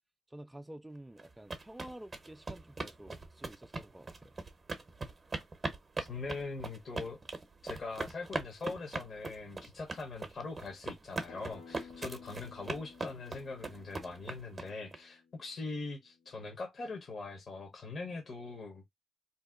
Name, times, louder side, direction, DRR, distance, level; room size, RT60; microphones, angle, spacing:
voice 1, 0.3-4.3, right 1 dB, 10° right, 0.3 m, -50 dB
sound 1, 1.2-15.0, right 3 dB, 25° right, 0.7 m, -40 dB
voice 2, 6.1-7.2 7.6-18.9, left 3 dB, 40° left, 1.0 m, -42 dB
Acoustic guitar, 11.3-16.5, left 5 dB, 90° left, 1.0 m, -55 dB
2.7 x 2.0 x 3.6 m
cardioid pair, 90°, 0 cm